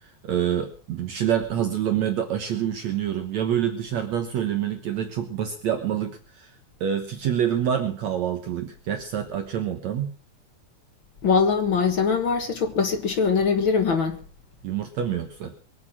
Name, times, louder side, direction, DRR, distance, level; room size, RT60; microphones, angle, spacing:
voice 1, 0.0-6.5 6.8-10.1 14.6-15.5, right 9 dB, 65° right, 2.3 m, -27 dB
voice 2, 11.2-14.2, left 5 dB, 45° left, 2.1 m, -22 dB
22.5 x 9.4 x 6.0 m
omnidirectional pair, 3.6 m